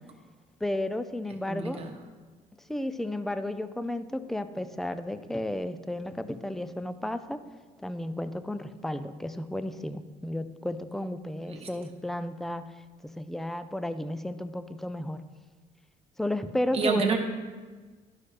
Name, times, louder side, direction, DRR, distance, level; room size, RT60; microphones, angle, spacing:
voice 1, 0.6-1.8 2.7-7.4 7.8-12.7 13.2-15.2 16.2-17.2, left 1 dB, ahead, 11 dB, 0.4 m, -33 dB
voice 2, 1.5-2.0 11.5-11.7 16.7-17.2, right 5 dB, 35° right, 3 dB, 1.2 m, -28 dB
11.5 x 5.5 x 3.3 m, 1.4 s
cardioid pair, 110°, 17 cm